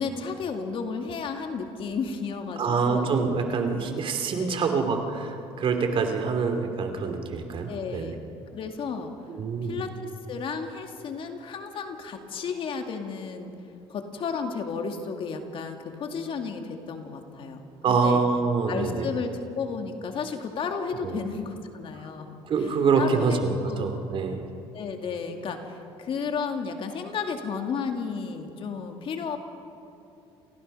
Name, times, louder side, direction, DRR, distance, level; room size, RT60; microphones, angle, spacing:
voice 1, 0.0-3.2 4.4-4.8 7.7-8.2 8.5-9.1 9.6-10.0 10.3-13.5 13.9-17.6 17.9-18.2 18.7-22.3 22.9-23.9 24.7-29.4, left 5 dB, 50° left, 5 dB, 2.3 m, -33 dB
voice 2, 2.6-8.1 9.3-9.8 17.8-19.1 21.0-21.2 22.4-24.4, right 5 dB, 50° right, 5 dB, 2.7 m, -25 dB
29.0 x 16.0 x 5.6 m, 2.8 s
cardioid pair, 100°, 11 cm